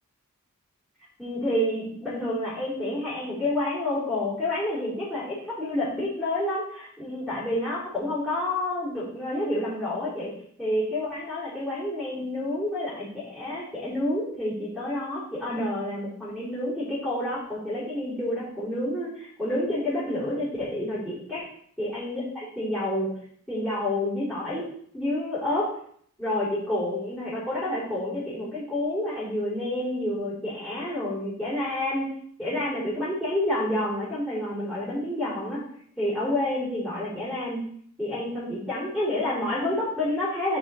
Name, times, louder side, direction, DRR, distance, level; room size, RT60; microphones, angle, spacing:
voice 1, 1.2-10.3 10.6-21.5 21.8-23.1 23.5-24.6 24.9-25.7 26.2-32.1 32.4-35.6 36.0-37.6 38.0-40.6, left 1 dB, 5° left, -12 dB, 3.8 m, -29 dB
6.2 x 5.0 x 5.7 m, 0.62 s
head